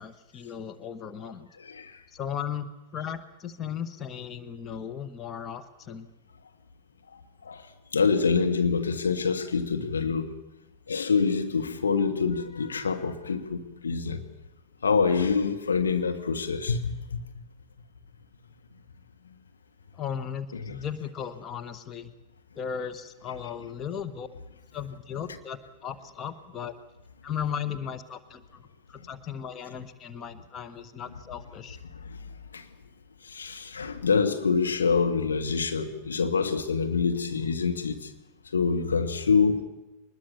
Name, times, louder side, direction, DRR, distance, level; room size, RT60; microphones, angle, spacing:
voice 1, 0.0-1.5 2.1-6.1 19.9-22.1 22.5-24.3 24.7-26.7 27.2-31.8, left 8 dB, 30° left, 1.3 m, -36 dB
voice 2, 1.6-2.0 7.4-7.6 7.9-10.3 10.9-14.2 14.8-17.2 20.6-20.8 31.9-32.2 32.5-32.7 33.3-38.1 38.5-39.6, left 5 dB, 70° left, 1.7 m, -26 dB
23.0 x 20.5 x 7.3 m
figure-of-eight pair, 90°, 0 cm